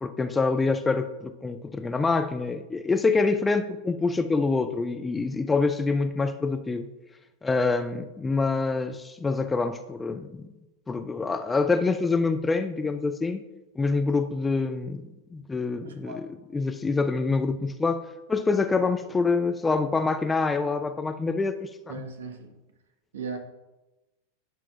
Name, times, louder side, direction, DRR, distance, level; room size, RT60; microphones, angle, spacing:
voice 1, 0.0-6.9 7.4-10.5 10.9-13.4 13.8-15.0 15.3-22.0, left 4 dB, 10° left, 9 dB, 0.4 m, -26 dB
voice 2, 15.8-16.2 21.9-22.5 23.1-23.4, right 4 dB, 65° right, 5 dB, 1.1 m, -37 dB
11.0 x 6.0 x 2.3 m, 1.0 s
figure-of-eight pair, 90°, 0 cm